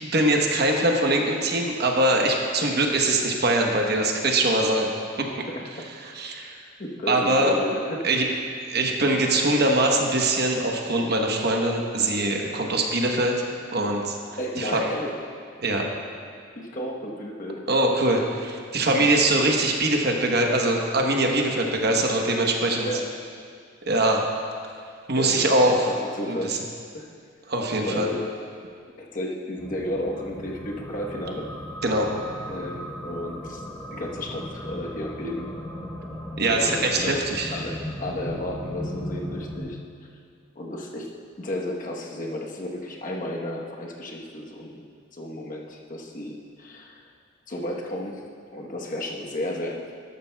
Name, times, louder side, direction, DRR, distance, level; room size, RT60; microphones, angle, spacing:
voice 1, 0.0-4.9 5.2-5.3 5.7-6.6 7.1-7.6 8.0-8.3 8.6-13.4 13.7-14.2 14.6-14.9 15.6-15.9 17.7-22.9 23.8-24.3 25.1-25.9 26.3-26.6 27.5-28.1 31.8-32.1 36.4-37.5, right 2 dB, 55° right, 1 dB, 1.0 m, -22 dB
voice 2, 5.5-5.9 6.8-8.1 9.2-9.5 14.4-15.1 16.5-17.7 19.0-19.1 22.8-23.0 25.2-26.6 26.9-27.1 27.8-28.3 29.0-31.5 32.5-33.6 33.9-35.5 36.5-39.8 40.6-41.1 41.4-44.8 45.1-47.1 47.5-48.2 48.5-49.9, left 1 dB, 45° left, -1 dB, 1.1 m, -33 dB
sound 1, 29.6-39.6, equal, 15° left, 1.1 m, -37 dB
13.0 x 12.0 x 2.3 m, 2.2 s
head